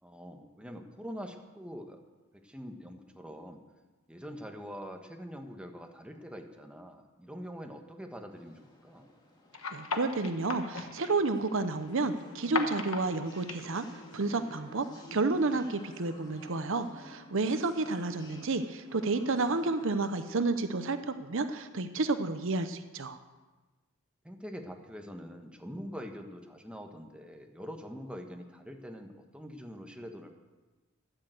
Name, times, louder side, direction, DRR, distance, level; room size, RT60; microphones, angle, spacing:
voice 1, 0.0-2.0 2.3-3.6 4.1-9.1 17.6-17.7 24.2-30.3, equal, 5° right, 3 dB, 1.3 m, -44 dB
sound 1, 8.3-20.2, left 1 dB, 20° left, 2.4 m, -52 dB
sound 2, 9.5-14.6, left 4 dB, 75° left, 1.5 m, -38 dB
voice 2, 9.7-13.8 14.1-14.9 15.1-23.2, right 3 dB, 65° right, 10 dB, 0.8 m, -30 dB
13.5 x 10.5 x 7.7 m, 1.2 s
head